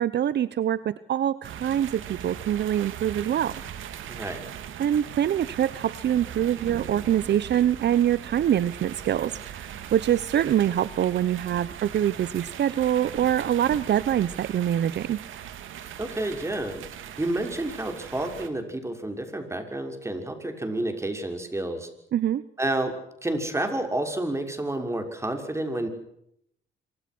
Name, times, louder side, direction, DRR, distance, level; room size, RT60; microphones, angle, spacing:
voice 1, 0.0-3.5 4.8-15.2 22.1-22.4, right 10 dB, 60° right, 17 dB, 0.9 m, -24 dB
sound 1, 1.4-18.5, right 10 dB, 80° right, 3.0 m, -40 dB
voice 2, 4.1-4.5 16.0-16.8 17.2-21.9 22.6-23.0 23.2-25.9, right 1 dB, 15° right, 6 dB, 6.3 m, -30 dB
26.5 x 24.5 x 6.3 m, 0.75 s
cardioid pair, 90°, 20 cm